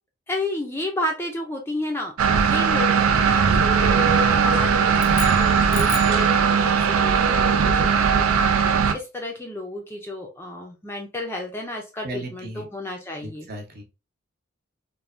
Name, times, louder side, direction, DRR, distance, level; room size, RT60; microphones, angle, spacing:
voice 1, 0.3-13.5, left 1 dB, 10° left, 1 dB, 0.4 m, -32 dB
sound 1, 2.2-8.9, right 6 dB, 85° right, 0.4 m, -19 dB
sound 2, 4.9-6.3, left 9 dB, 70° left, 0.5 m, -34 dB
voice 2, 12.0-12.7 13.2-13.8, right 1 dB, 45° right, 2 dB, 0.8 m, -35 dB
3.2 x 2.1 x 2.4 m, 0.28 s
head